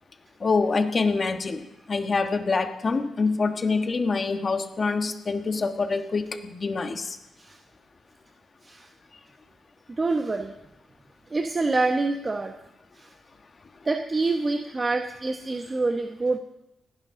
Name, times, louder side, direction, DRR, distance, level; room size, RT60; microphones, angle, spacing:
voice 1, 0.4-7.2, left 4 dB, 40° left, 7 dB, 1.4 m, -26 dB
voice 2, 10.0-10.5 11.3-12.5 13.0-13.1 13.8-16.4, right 3 dB, 25° right, 4 dB, 1.0 m, -26 dB
30.0 x 10.5 x 3.8 m, 0.89 s
cardioid pair, 105°, 0 cm